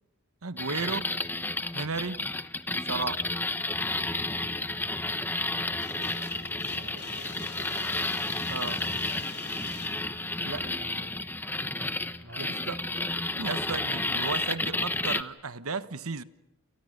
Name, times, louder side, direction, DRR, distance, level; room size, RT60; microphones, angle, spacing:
voice 1, 0.4-1.1 1.7-2.2 2.8-3.2 8.5-8.8 10.4-10.6 12.4-12.8 13.3-16.2, right 4 dB, 85° right, 1.2 m, -34 dB
sound 1, 0.6-15.2, left 2 dB, 10° left, 1.0 m, -31 dB
sound 2, 5.8-10.8, left 5 dB, 55° left, 6.5 m, -45 dB
voice 2, 6.0-6.5 6.7-8.0 10.6-11.2 12.1-12.5, right 1 dB, 60° right, 4.0 m, -49 dB
29.0 x 29.0 x 6.6 m
head